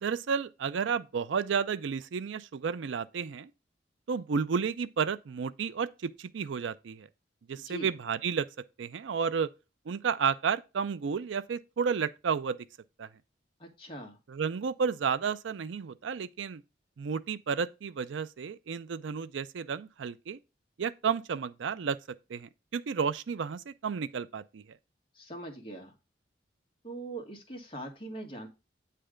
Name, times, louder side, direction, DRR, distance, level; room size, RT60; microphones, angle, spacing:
voice 1, 0.0-3.5 4.1-7.1 7.5-8.5 8.8-9.5 9.9-12.6 13.0-13.1 14.3-16.6 17.0-20.4 20.8-22.0 22.3-24.6, right 6 dB, 90° right, 0.4 m, -32 dB
voice 2, 13.6-14.2 25.1-25.9 26.8-28.5, right 2 dB, 30° left, 1.5 m, -41 dB
8.8 x 3.3 x 5.0 m
head